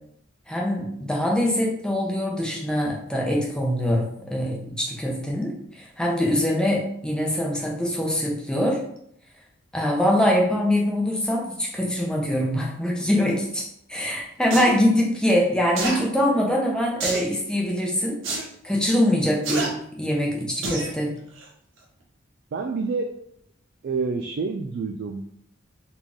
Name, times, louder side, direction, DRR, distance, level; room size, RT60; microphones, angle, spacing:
voice 1, 0.5-5.5 6.0-8.8 9.7-18.2 18.6-21.1, left 1 dB, 5° left, -2 dB, 0.9 m, -23 dB
sound 1, 14.5-14.7 15.8-16.0 17.0-17.3 18.2-18.4 19.4-19.7 20.6-20.9 21.4-21.5, right 3 dB, 80° right, 1.0 m, -27 dB
voice 2, 22.5-23.2 23.8-25.2, right 4 dB, 55° right, 5 dB, 0.4 m, -28 dB
4.1 x 3.1 x 3.6 m, 0.70 s
head